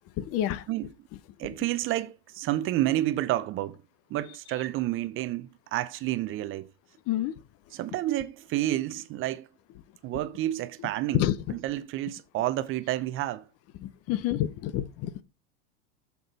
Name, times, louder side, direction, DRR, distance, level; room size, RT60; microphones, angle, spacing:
voice 1, 0.2-0.7 7.1-7.3 11.1-11.4 13.8-15.2, left 13 dB, 45° left, 0.7 m, -28 dB
voice 2, 1.4-3.8 4.1-6.7 7.7-9.5 10.0-11.2 11.5-13.5, right 14 dB, 40° right, 0.6 m, -30 dB
7.1 x 6.1 x 4.0 m
supercardioid pair, 115°, 33 cm